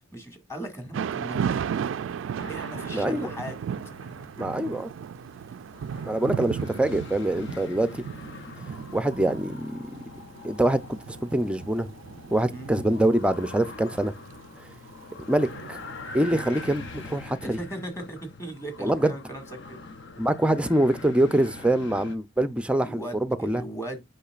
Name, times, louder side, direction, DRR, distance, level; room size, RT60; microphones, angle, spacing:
voice 1, 0.1-1.6 2.5-3.6 7.5-7.6 12.5-12.8 17.4-19.9 22.8-24.0, right 1 dB, 15° left, 1.9 m, -38 dB
Thunder / Rain, 0.9-17.0, right 7 dB, 70° right, 0.3 m, -35 dB
sound 1, 2.4-22.2, left 3 dB, 60° left, 0.8 m, -44 dB
voice 2, 2.9-3.3 4.4-4.9 6.1-7.9 8.9-9.8 10.4-10.8 11.1-11.9 12.3-14.1 15.3-15.8 16.1-17.6 18.8-19.1 20.2-23.6, right 1 dB, 5° right, 0.5 m, -24 dB
8.5 x 5.8 x 2.4 m
head